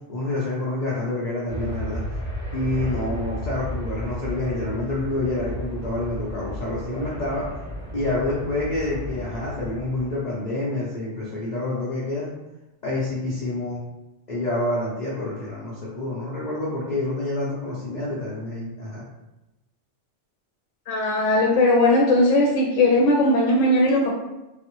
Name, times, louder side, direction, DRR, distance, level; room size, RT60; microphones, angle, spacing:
voice 1, 0.1-2.0 2.5-7.5 7.9-12.3 12.8-13.8 14.3-19.0, left 2 dB, 45° left, -7 dB, 0.6 m, -27 dB
sound 1, 1.5-10.2, equal, 60° right, 1.7 m, -33 dB
voice 2, 20.9-24.1, left 1 dB, 85° left, -1 dB, 0.9 m, -18 dB
4.0 x 2.0 x 2.9 m, 1.0 s
omnidirectional pair, 1.2 m